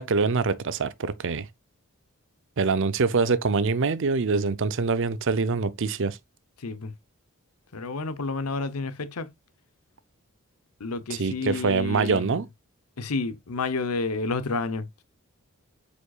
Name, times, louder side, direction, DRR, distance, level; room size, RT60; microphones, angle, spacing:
voice 1, 0.0-1.5 2.6-6.2 11.2-12.5, right 4 dB, 60° right, 0.6 m, -24 dB
voice 2, 6.6-6.9 7.7-9.3 10.8-12.4 13.0-15.0, left 3 dB, 90° left, 0.8 m, -30 dB
8.3 x 5.1 x 2.4 m
head